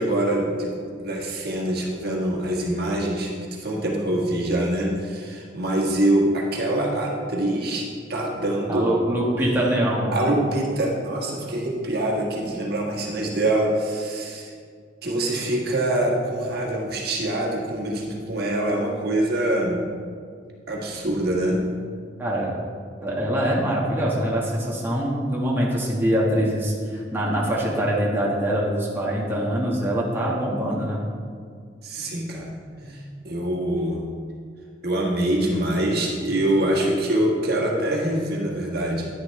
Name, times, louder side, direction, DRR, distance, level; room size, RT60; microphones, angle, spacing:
voice 1, 0.0-3.3 3.6-8.9 9.4-9.6 10.1-14.5 15.0-19.8 20.7-21.6 31.8-32.5 32.9-34.0 34.8-39.1, right 1 dB, 55° right, -2 dB, 1.5 m, -24 dB
voice 2, 8.7-10.3 22.2-22.5 23.0-31.0 32.8-33.0, equal, 10° right, -5 dB, 1.5 m, -24 dB
10.5 x 9.9 x 3.2 m, 2.1 s
head